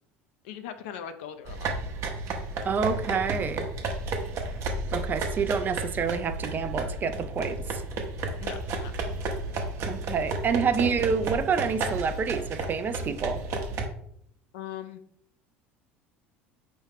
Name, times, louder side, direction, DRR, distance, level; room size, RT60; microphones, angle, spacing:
voice 1, 0.4-1.7 8.4-8.9 14.5-15.0, left 9 dB, 60° left, 10 dB, 0.4 m, -40 dB
sound 1, 1.4-13.9, right 3 dB, 45° right, 0.8 m, -32 dB
voice 2, 2.6-3.7 4.9-7.8 9.9-13.4, right 6 dB, 30° right, 10 dB, 0.4 m, -28 dB
4.4 x 3.0 x 3.4 m, 0.67 s
figure-of-eight pair, 70°, 6 cm